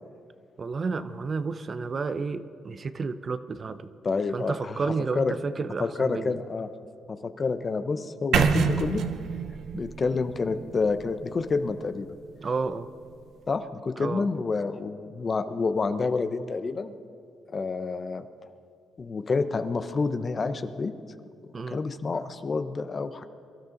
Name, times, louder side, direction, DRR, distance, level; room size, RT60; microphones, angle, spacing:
voice 1, 0.6-3.9 4.3-6.4 12.4-12.9 14.0-14.3 21.5-21.8, right 4 dB, 40° right, 12 dB, 0.7 m, -31 dB
voice 2, 4.0-4.8 5.1-5.3 5.8-6.7 7.1-9.0 9.7-12.1 13.5-17.0 17.5-18.2 19.0-20.9 21.7-23.3, left 4 dB, 35° left, 10 dB, 0.9 m, -28 dB
sound 1, 8.3-12.3, right 6 dB, 70° right, 1.0 m, -28 dB
23.0 x 12.5 x 4.0 m, 2.5 s
cardioid pair, 90°, 0 cm